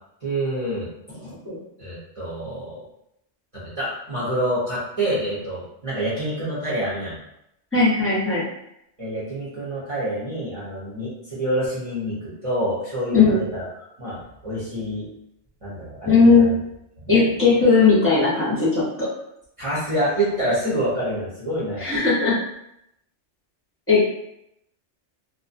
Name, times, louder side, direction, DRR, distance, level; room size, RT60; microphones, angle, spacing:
voice 1, 0.2-1.3 1.8-2.8 3.5-7.2 9.0-13.6 14.0-15.1 15.6-16.5 17.0-17.2 19.6-21.8, right 1 dB, 30° right, -10 dB, 0.8 m, -27 dB
voice 2, 7.7-8.4 13.1-13.4 16.0-16.6 17.1-19.1 21.8-22.4 23.9-24.0, left 4 dB, 15° left, -7 dB, 0.7 m, -17 dB
2.5 x 2.3 x 2.5 m, 0.79 s
omnidirectional pair, 1.2 m